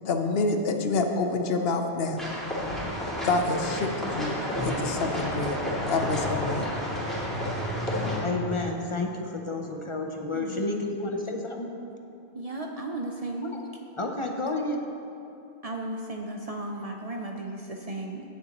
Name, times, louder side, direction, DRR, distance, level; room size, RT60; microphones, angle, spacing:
voice 1, 0.0-2.3 3.2-4.3 4.6-6.7, left 3 dB, 70° left, 5 dB, 0.9 m, -27 dB
sound 1, 2.2-8.2, equal, ahead, 2.2 m, -30 dB
voice 2, 7.9-11.7 13.5-13.7 14.0-14.8, left 2 dB, 40° left, 3 dB, 0.5 m, -31 dB
voice 3, 10.3-10.9 12.3-13.5 15.6-18.2, right 2 dB, 45° right, 2 dB, 0.5 m, -35 dB
16.0 x 6.8 x 2.9 m, 2.8 s
omnidirectional pair, 1.1 m